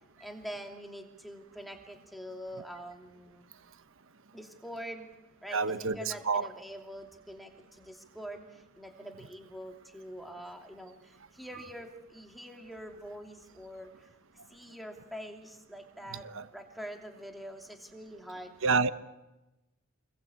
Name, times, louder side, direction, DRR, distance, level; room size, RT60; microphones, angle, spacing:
voice 1, 0.2-3.4 4.3-5.1 5.4-14.1 14.5-18.6, equal, ahead, 3 dB, 2.8 m, -45 dB
voice 2, 5.5-6.5 16.2-16.4 18.6-18.9, right 4 dB, 65° right, 12 dB, 1.1 m, -28 dB
28.0 x 22.0 x 8.7 m, 1.0 s
head